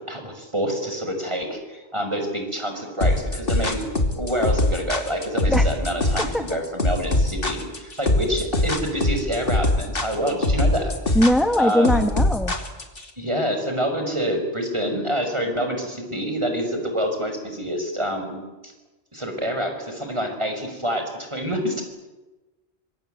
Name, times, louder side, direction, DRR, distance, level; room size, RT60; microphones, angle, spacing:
voice 1, 0.1-3.9 4.1-10.9 11.6-12.1 13.2-18.7 19.1-21.8, equal, 25° right, 4 dB, 6.1 m, -27 dB
sound 1, 3.0-13.0, left 2 dB, 55° left, 3.0 m, -22 dB
voice 2, 11.1-12.5, left 1 dB, ahead, 6 dB, 1.6 m, -20 dB
26.0 x 23.5 x 9.4 m, 1.1 s
omnidirectional pair, 1.2 m